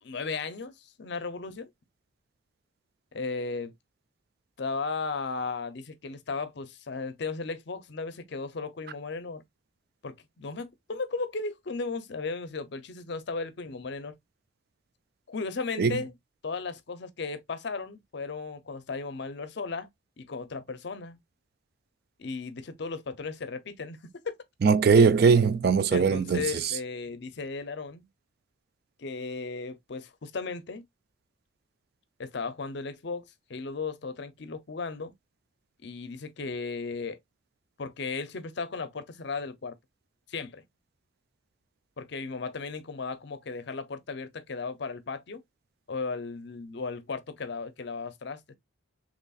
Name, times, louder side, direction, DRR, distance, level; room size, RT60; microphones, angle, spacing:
voice 1, 0.0-1.7 3.1-3.7 4.6-9.4 10.0-14.2 15.3-16.1 16.4-19.9 20.2-21.2 22.2-24.0 24.2-24.3 25.9-28.1 29.0-30.8 32.2-33.2 33.5-35.1 35.8-37.2 37.8-39.7 40.3-40.6 42.0-45.4 45.9-48.4, left 4 dB, 55° left, 0.5 m, -35 dB
voice 2, 24.6-26.4, right 5 dB, 50° right, 0.3 m, -20 dB
4.0 x 3.0 x 2.3 m
head